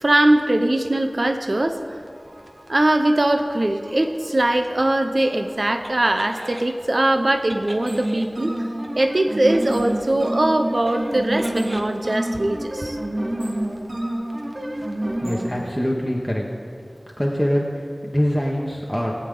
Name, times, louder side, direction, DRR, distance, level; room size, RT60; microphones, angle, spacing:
voice 1, 0.0-2.0 2.7-8.7 9.0-13.0, right 1 dB, 60° right, 6 dB, 0.7 m, -21 dB
sound 1, 2.2-6.7 7.5-15.7, right 1 dB, 40° right, 1.1 m, -29 dB
voice 2, 15.2-16.4 17.2-19.1, equal, ahead, -2 dB, 1.2 m, -24 dB
21.0 x 8.7 x 3.9 m, 2.5 s
wide cardioid pair, 55°, 0 cm